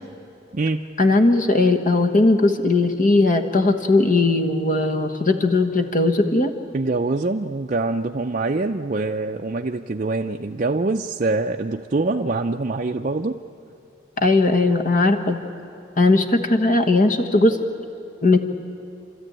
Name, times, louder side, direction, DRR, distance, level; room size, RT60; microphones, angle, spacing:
voice 1, 1.0-6.5 14.2-15.4 16.0-17.6 18.2-18.4, left 2 dB, 45° left, 5 dB, 1.3 m, -18 dB
voice 2, 6.7-13.4, right 3 dB, 40° right, 2 dB, 0.5 m, -24 dB
29.5 x 13.0 x 8.9 m, 2.7 s
head